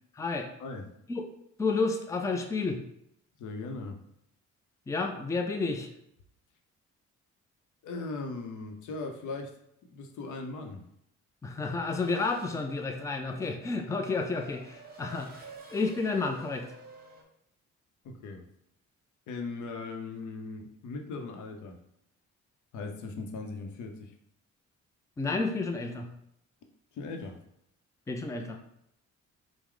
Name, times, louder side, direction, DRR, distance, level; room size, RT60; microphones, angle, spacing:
voice 1, 0.2-0.5 1.1-1.3 1.6-2.8 4.9-5.9 11.4-15.4 15.7-16.7 25.2-26.1 28.1-28.6, left 3 dB, 10° left, 4 dB, 0.4 m, -31 dB
voice 2, 3.4-4.0 7.8-9.6 9.9-10.8 18.0-18.4 19.3-21.8 22.7-24.1 26.9-27.4, left 3 dB, 75° left, 4 dB, 0.7 m, -38 dB
Race car auto racing / Accelerating revving vroom, 11.6-17.2, right 2 dB, 30° right, 0.9 m, -51 dB
4.5 x 2.1 x 3.7 m, 0.77 s
cardioid pair, 90°, 30 cm